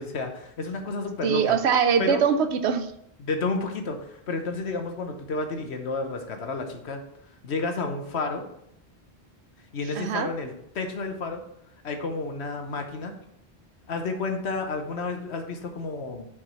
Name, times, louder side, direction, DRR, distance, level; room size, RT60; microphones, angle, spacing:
voice 1, 0.0-1.6 2.0-2.2 3.2-7.0 7.4-8.4 9.7-11.4 11.8-13.1 13.9-16.3, left 3 dB, 80° left, 5 dB, 1.3 m, -31 dB
voice 2, 1.2-2.9 9.9-10.3, right 6 dB, 80° right, 11 dB, 1.0 m, -22 dB
6.2 x 4.7 x 5.7 m, 0.76 s
omnidirectional pair, 1.1 m